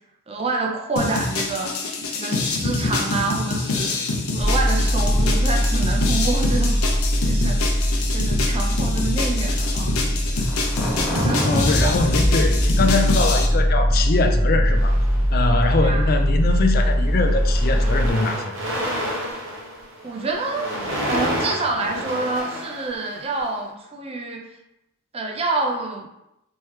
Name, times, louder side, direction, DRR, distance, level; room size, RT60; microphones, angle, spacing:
voice 1, 0.3-1.7 2.1-6.8 7.2-7.6 8.1-10.5 11.1-12.1 15.8-16.1 20.0-20.7 21.1-24.5 25.1-26.1, right 3 dB, 30° right, 1 dB, 0.5 m, -27 dB
sound 1, 1.0-13.5, left 3 dB, 85° left, 0.6 m, -26 dB
sound 2, 4.4-18.1, equal, ahead, 0.8 m, -21 dB
voice 2, 11.4-15.0 15.3-18.5, left 3 dB, 45° left, 5 dB, 0.4 m, -23 dB
sound 3, 14.7-15.7 16.5-16.7 17.0-23.5, equal, 60° right, 0.9 m, -30 dB
3.2 x 3.1 x 3.1 m, 0.87 s
head